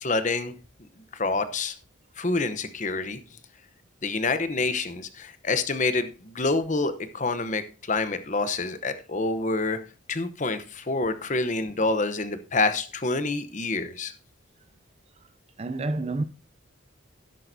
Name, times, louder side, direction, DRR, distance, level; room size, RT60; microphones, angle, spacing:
voice 1, 0.0-0.5 1.1-1.7 2.2-3.2 4.0-9.8 10.1-14.1, left 3 dB, 35° left, 0.8 m, -27 dB
voice 2, 15.6-16.2, right 2 dB, 30° right, 0.5 m, -29 dB
12.0 x 10.5 x 2.7 m
head